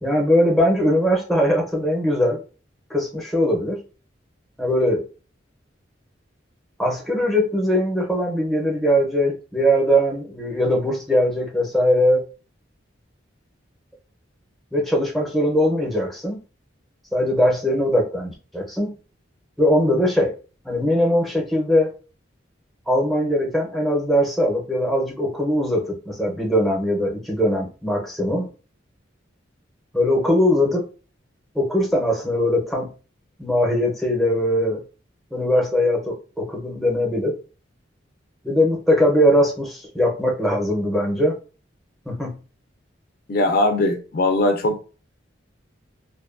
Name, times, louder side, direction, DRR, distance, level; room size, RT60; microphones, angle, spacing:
voice 1, 0.0-2.4 2.9-3.8 4.6-5.0 6.8-12.3 14.7-16.4 17.1-18.9 19.6-20.3 20.6-21.9 22.9-28.5 29.9-30.9 31.5-32.9 33.4-34.8 35.3-37.4 38.4-41.4 42.1-42.4, equal, ahead, -1 dB, 0.6 m, -20 dB
voice 2, 43.3-44.8, left 2 dB, 50° left, 5 dB, 0.4 m, -20 dB
2.5 x 2.2 x 2.4 m, 0.35 s
head